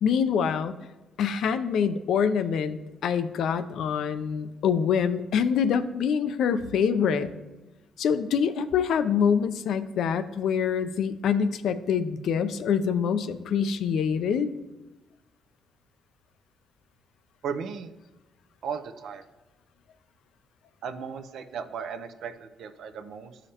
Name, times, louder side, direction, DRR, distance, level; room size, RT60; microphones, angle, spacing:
voice 1, 0.0-0.7 1.2-7.3 8.0-14.5, left 7 dB, 75° left, 11 dB, 0.5 m, -25 dB
voice 2, 17.4-17.9 18.6-19.2 20.8-23.4, right 6 dB, 75° right, 8 dB, 0.5 m, -36 dB
12.5 x 5.0 x 2.9 m, 1.1 s
cardioid pair, 90°, 0 cm